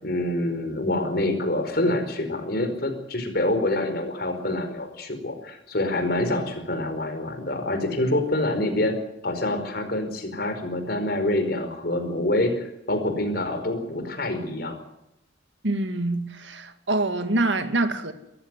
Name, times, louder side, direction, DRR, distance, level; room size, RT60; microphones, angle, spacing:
voice 1, 0.0-8.9 9.2-14.8, left 1 dB, 55° left, 4.9 m, -26 dB
voice 2, 15.6-18.1, right 2 dB, 75° right, 2.1 m, -25 dB
23.0 x 15.0 x 9.7 m
head